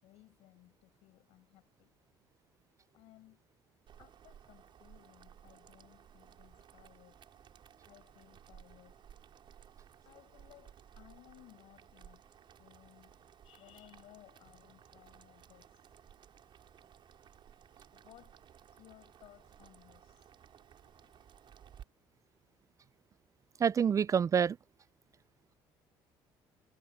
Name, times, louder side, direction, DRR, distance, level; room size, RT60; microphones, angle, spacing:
voice 1, 0.0-1.9 2.9-3.5 4.0-7.2 7.9-9.0 10.0-12.2 12.6-15.7 17.9-18.4 18.7-21.3, left 17 dB, 75° left, 5.3 m, -61 dB
Boiling, 3.9-21.8, right 9 dB, 55° right, 6.5 m, -58 dB
voice 2, 23.6-24.6, right 7 dB, 30° right, 0.3 m, -27 dB
supercardioid pair, 90°, 10 cm